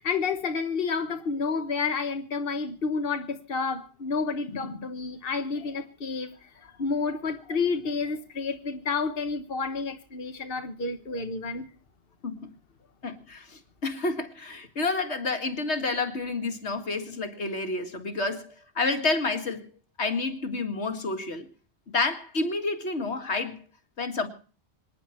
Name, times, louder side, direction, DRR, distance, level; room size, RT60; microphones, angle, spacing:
voice 1, 0.0-11.6, left 4 dB, 60° left, 1.5 m, -30 dB
voice 2, 13.0-19.7 20.0-21.5 21.9-23.6 24.0-24.3, left 3 dB, 85° left, 2.3 m, -29 dB
26.5 x 10.0 x 4.4 m
omnidirectional pair, 1.1 m